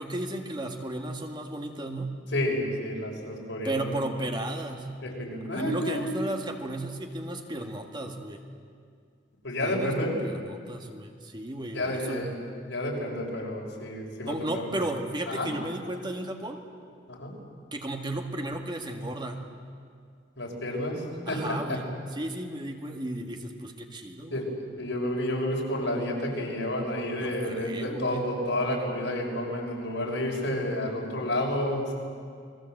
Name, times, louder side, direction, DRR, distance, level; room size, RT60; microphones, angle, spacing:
voice 1, 0.0-2.1 3.6-4.9 5.5-8.4 9.6-12.3 14.3-16.6 17.7-19.4 21.3-24.4 27.2-28.3, right 1 dB, 25° right, 4 dB, 1.9 m, -34 dB
voice 2, 2.3-4.0 5.0-6.2 9.4-10.1 11.7-12.3 12.7-14.8 15.3-15.5 17.1-17.3 20.4-21.8 24.3-24.4 24.8-31.9, left 1 dB, 80° left, -1 dB, 6.2 m, -30 dB
29.0 x 21.5 x 8.0 m, 2.2 s
head